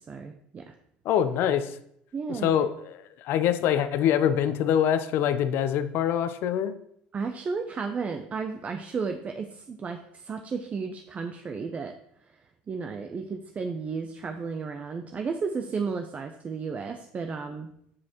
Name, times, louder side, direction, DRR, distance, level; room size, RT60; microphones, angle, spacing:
voice 1, 0.1-0.7 2.1-2.7 7.1-11.9 12.7-17.7, right 5 dB, 35° right, 6 dB, 0.6 m, -33 dB
voice 2, 1.1-1.7 2.4-6.7, left 9 dB, 60° left, 11 dB, 0.6 m, -24 dB
7.4 x 6.3 x 3.0 m, 0.71 s
hypercardioid pair, 80°, 4 cm